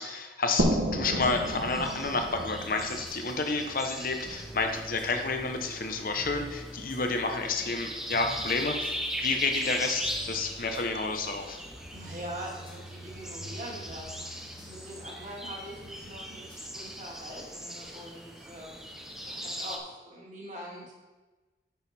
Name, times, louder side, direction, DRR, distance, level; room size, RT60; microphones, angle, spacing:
voice 1, 0.0-11.6, left 3 dB, 50° left, 5 dB, 0.9 m, -30 dB
sound 1, 0.6-4.1, right 1 dB, 80° right, 1.0 m, -31 dB
sound 2, 1.2-19.8, equal, 5° right, 0.7 m, -39 dB
sound 3, 2.3-17.6, equal, 25° left, 1.4 m, -48 dB
voice 2, 11.9-20.9, right 1 dB, 40° right, -2 dB, 2.1 m, -43 dB
9.3 x 6.4 x 4.3 m, 1.2 s
head